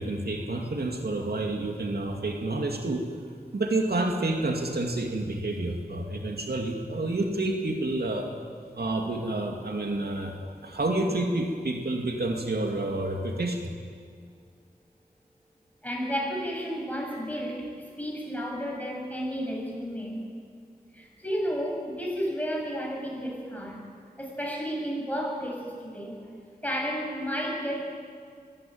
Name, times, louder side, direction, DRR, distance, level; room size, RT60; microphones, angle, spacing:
voice 1, 0.0-3.1 3.5-8.3 8.7-10.3 10.6-13.7, right 2 dB, 80° right, 2 dB, 2.6 m, -29 dB
voice 2, 15.8-20.3 20.9-23.8 24.2-26.2 26.6-27.8, equal, 10° left, -1 dB, 7.7 m, -32 dB
23.0 x 16.0 x 9.4 m, 2.1 s
wide cardioid pair, 50°, 16 cm